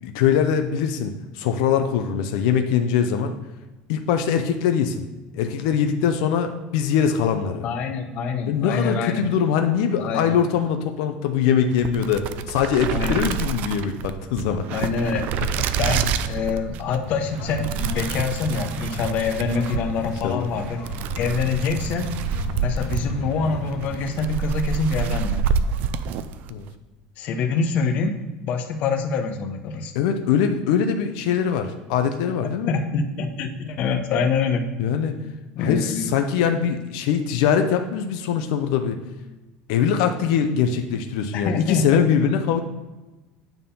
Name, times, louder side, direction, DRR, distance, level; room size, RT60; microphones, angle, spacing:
voice 1, 0.0-3.3 3.9-5.1 5.3-7.6 8.4-14.6 20.2-20.5 21.2-21.5 26.5-26.7 29.9-32.8 34.8-35.2 35.6-39.0 39.7-42.6, left 8 dB, 80° left, 6 dB, 0.6 m, -22 dB
voice 2, 7.6-9.2 10.0-10.3 12.9-13.2 14.7-15.3 15.8-20.8 21.2-22.1 22.6-25.4 27.2-28.2 28.5-29.9 32.4-34.6 35.5-36.1 41.3-42.3, left 5 dB, 45° left, 5 dB, 0.8 m, -25 dB
sound 1, 11.7-26.6, right 6 dB, 50° right, 0.4 m, -28 dB
sound 2, 17.0-24.1, left 3 dB, 60° left, 1.8 m, -35 dB
9.1 x 3.7 x 5.5 m, 1.1 s
cardioid pair, 160°, 4 cm